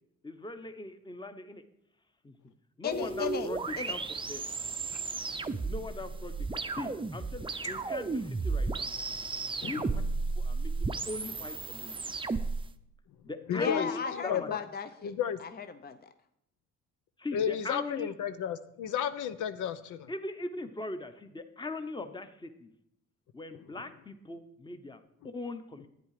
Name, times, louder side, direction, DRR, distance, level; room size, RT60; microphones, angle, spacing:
voice 1, 0.2-1.6 2.2-2.4 2.8-4.4 5.6-8.9 9.6-10.0 10.4-12.0 13.2-14.5 17.2-18.1 20.1-22.7 23.3-25.9, left 2 dB, 15° left, 9 dB, 1.0 m, -40 dB
voice 2, 2.8-3.5 3.8-4.0 13.5-15.1 15.4-16.0, left 6 dB, 30° left, 10 dB, 0.7 m, -35 dB
sound 1, 2.9-12.7, right 3 dB, 15° right, 0.6 m, -34 dB
voice 3, 13.5-13.9 14.1-14.6 15.0-15.4 17.3-20.1, left 9 dB, 80° left, 12 dB, 0.7 m, -32 dB
10.5 x 9.1 x 4.9 m, 0.75 s
cardioid pair, 90°, 30 cm